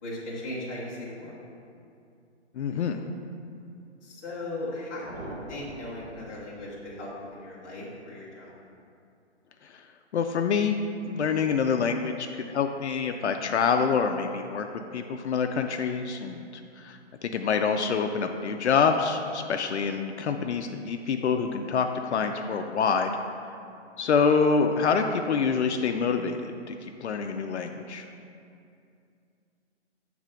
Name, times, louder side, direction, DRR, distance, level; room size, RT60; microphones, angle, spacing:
voice 1, 0.0-1.4 4.0-8.5, left 1 dB, 15° left, -7 dB, 0.9 m, -38 dB
voice 2, 2.5-3.0 9.6-9.8 10.1-10.8 11.1-14.7 14.9-16.5 16.8-23.1 24.0-28.1, left 5 dB, 70° left, 5 dB, 0.5 m, -26 dB
sound 1, 5.0-7.3, right 1 dB, 85° right, 1.4 m, -43 dB
7.2 x 3.3 x 5.0 m, 2.5 s
hypercardioid pair, 160°, 35 cm